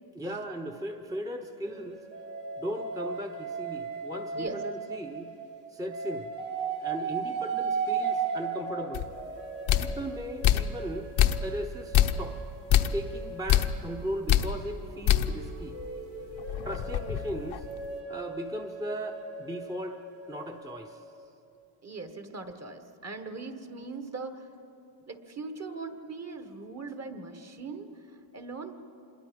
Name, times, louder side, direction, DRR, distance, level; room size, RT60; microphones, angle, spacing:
voice 1, 0.1-2.0 2.6-5.3 5.7-6.3 6.8-9.1 9.8-11.1 11.4-12.4 12.9-15.8 16.6-17.7 18.1-20.0 20.3-21.0, right 1 dB, 10° right, 3 dB, 0.9 m, -37 dB
sound 1, 1.6-5.5 5.9-14.0 14.7-20.6, right 5 dB, 70° right, 5.5 m, -37 dB
sound 2, 8.9-9.1 9.7-10.0 10.4-10.8 11.2-11.6 11.9-12.3 12.7-13.0 13.5-13.8 14.3-14.6 15.1-15.4 15.8-15.9 16.4-17.8, left 11 dB, 75° left, 0.9 m, -25 dB
voice 2, 21.8-24.5 25.1-28.7, right 3 dB, 35° right, 7 dB, 1.6 m, -40 dB
26.5 x 21.5 x 5.3 m, 3.0 s
cardioid pair, 105°, 46 cm